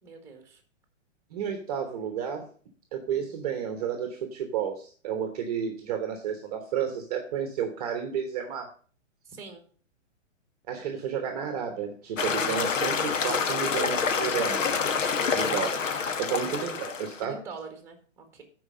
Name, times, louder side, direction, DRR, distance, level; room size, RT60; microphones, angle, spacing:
voice 1, 0.0-0.6 9.3-9.6 16.3-16.5 17.2-18.4, right 4 dB, 5° right, 5 dB, 1.5 m, -44 dB
voice 2, 1.3-2.5 2.9-8.7 10.7-14.6 15.3-17.4, right 8 dB, 30° right, 6 dB, 1.0 m, -32 dB
sound 1, 12.2-17.2, left 5 dB, 80° left, 1.3 m, -27 dB
9.6 x 4.7 x 6.3 m, 0.44 s
hypercardioid pair, 165°, 38 cm